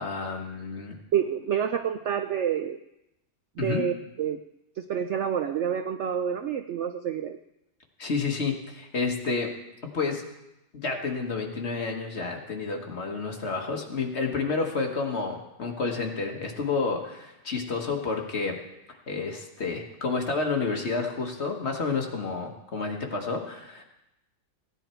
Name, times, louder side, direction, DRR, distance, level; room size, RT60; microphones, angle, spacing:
voice 1, 0.0-1.0 3.6-3.9 8.0-9.5 9.8-10.2 10.7-18.6 19.1-23.8, left 4 dB, 40° left, 2 dB, 1.6 m, -30 dB
voice 2, 1.1-2.8 3.6-4.4 4.8-7.4, right 8 dB, 90° right, 8 dB, 0.6 m, -28 dB
16.0 x 10.0 x 4.4 m, 0.90 s
omnidirectional pair, 1.8 m